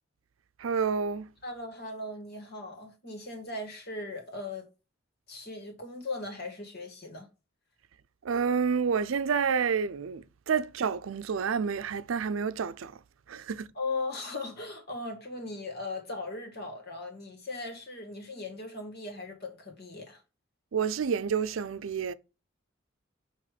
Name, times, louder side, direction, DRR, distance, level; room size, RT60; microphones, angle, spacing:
voice 1, 0.6-1.3 8.2-12.9 13.3-13.7 20.7-22.1, right 6 dB, 80° right, 0.5 m, -29 dB
voice 2, 1.4-4.7 5.3-7.3 13.7-20.2, left 2 dB, 55° left, 1.8 m, -38 dB
6.7 x 3.0 x 4.9 m
head